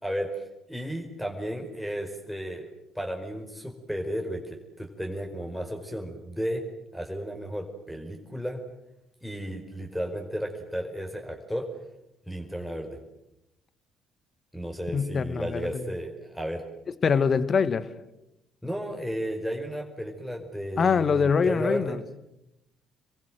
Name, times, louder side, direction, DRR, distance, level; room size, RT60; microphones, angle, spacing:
voice 1, 0.0-2.7 2.9-6.6 6.9-8.6 9.2-11.7 12.3-13.0 14.5-16.6 18.6-22.0, equal, 5° left, 4 dB, 4.8 m, -33 dB
voice 2, 14.9-15.9 17.0-17.8 20.8-22.0, left 5 dB, 40° left, 15 dB, 1.7 m, -24 dB
29.0 x 23.0 x 7.8 m, 0.89 s
figure-of-eight pair, 50°, 0 cm